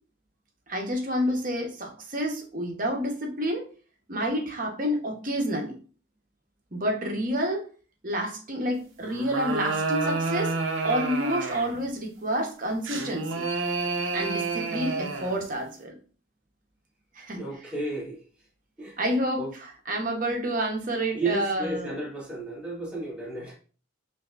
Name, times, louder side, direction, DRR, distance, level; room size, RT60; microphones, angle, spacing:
voice 1, 0.7-3.7 4.1-5.8 6.7-7.7 8.0-10.5 10.8-13.5 14.1-16.0 17.1-17.7 19.0-21.9, equal, 40° right, 2 dB, 0.9 m, -29 dB
sound 1, 9.0-11.8 12.8-15.4, right 3 dB, 80° right, 0.7 m, -29 dB
voice 2, 17.3-18.2 18.8-18.9 19.3-19.5 21.1-23.5, right 2 dB, 5° right, -4 dB, 1.3 m, -32 dB
5.7 x 2.7 x 2.4 m, 0.39 s
head